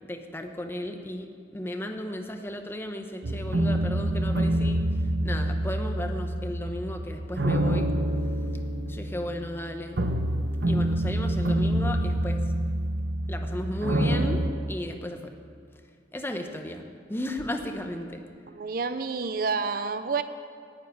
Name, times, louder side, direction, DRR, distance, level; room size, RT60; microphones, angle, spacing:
voice 1, 0.0-1.3 1.5-4.8 5.2-7.9 8.9-10.0 10.7-12.4 13.3-15.3 16.1-16.8 17.1-18.2, left 1 dB, 15° left, 5 dB, 0.8 m, -34 dB
sound 1, 3.2-14.5, right 1 dB, 85° right, 0.8 m, -27 dB
voice 2, 18.5-20.2, right 4 dB, 55° right, 11 dB, 0.5 m, -29 dB
9.8 x 7.3 x 9.2 m, 2.3 s
head